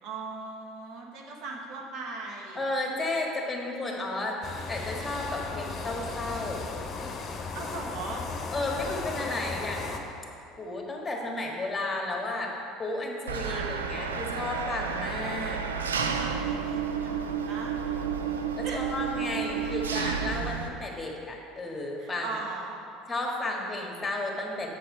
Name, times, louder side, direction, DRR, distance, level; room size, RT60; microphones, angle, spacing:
voice 1, 0.0-2.6 7.5-8.2 13.4-13.7 16.4-17.8 18.6-18.8 22.0-22.9, right 3 dB, 60° right, 0 dB, 1.3 m, -39 dB
voice 2, 2.5-4.4 4.7-6.7 8.5-9.9 10.6-15.6 18.6-22.4 23.1-24.7, left 2 dB, 20° left, 0 dB, 1.7 m, -33 dB
sound 1, 4.4-10.0, left 4 dB, 35° left, 1.0 m, -36 dB
Engine, 13.3-20.7, right 6 dB, 85° right, 0.5 m, -31 dB
7.8 x 7.4 x 4.5 m, 2.5 s
hypercardioid pair, 70°, 0 cm